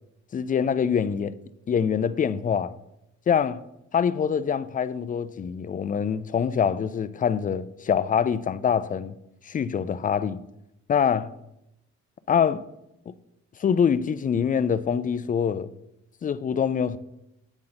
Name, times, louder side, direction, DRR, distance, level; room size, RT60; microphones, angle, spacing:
voice 1, 0.3-1.3 1.7-2.8 3.3-3.6 3.9-9.2 9.5-10.4 10.9-11.3 12.3-12.6 13.6-15.7 16.2-17.0, left 7 dB, 30° left, 0.4 m, -24 dB
7.2 x 3.9 x 6.4 m
cardioid pair, 90°, 30 cm